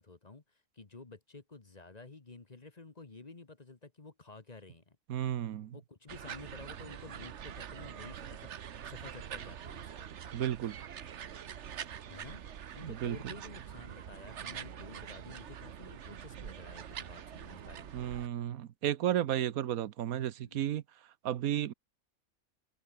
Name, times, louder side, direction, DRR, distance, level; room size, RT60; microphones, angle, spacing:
voice 1, 0.0-5.0 5.7-10.1 12.1-18.0 20.4-20.7, left 3 dB, 30° left, 1.4 m, -52 dB
voice 2, 5.1-5.8 10.3-10.8 12.8-13.2 17.9-20.8 21.2-21.7, right 11 dB, 90° right, 1.3 m, -33 dB
sound 1, 6.1-18.3, right 9 dB, 55° right, 1.2 m, -45 dB
omnidirectional pair, 1.5 m